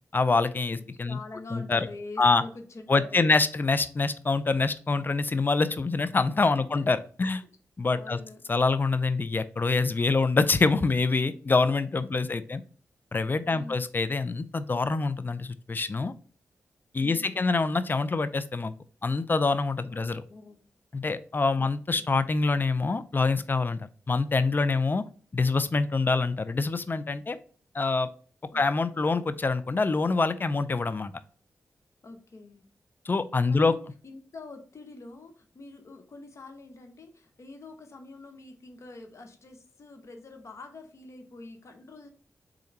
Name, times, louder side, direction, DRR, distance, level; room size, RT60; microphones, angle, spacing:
voice 1, 0.1-1.2 1.5-1.9 2.2-2.4 2.9-7.4 7.8-8.2 8.5-12.6 13.1-16.1 16.9-18.7 19.0-20.2 20.9-23.8 24.1-25.0 25.3-27.4 27.7-28.1 28.5-31.1 33.1-33.7, left 3 dB, 35° left, 13 dB, 0.4 m, -25 dB
voice 2, 0.7-3.3 6.5-6.8 7.2-7.3 7.9-8.4 12.1-12.6 13.5-13.8 17.0-17.5 19.8-20.6 21.6-22.1 28.5-28.7 32.0-32.6 33.5-42.1, left 3 dB, 60° left, 5 dB, 0.8 m, -46 dB
3.7 x 3.3 x 3.0 m, 0.43 s
cardioid pair, 45°, 6 cm